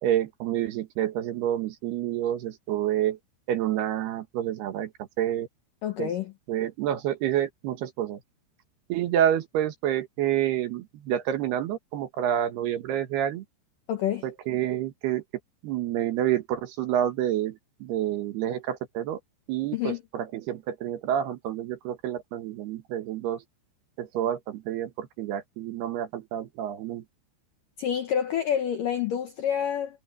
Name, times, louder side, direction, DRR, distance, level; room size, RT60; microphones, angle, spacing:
voice 1, 0.0-3.2 3.5-4.9 5.2-5.5 6.0-6.1 6.5-8.2 8.9-13.4 14.2-15.2 15.6-19.2 19.5-23.4 24.0-27.0, right 11 dB, 70° right, 3.1 m, -28 dB
voice 2, 5.8-6.3 13.9-14.3 19.7-20.0 27.8-30.0, left 9 dB, 75° left, 2.0 m, -28 dB
omnidirectional pair, 5.3 m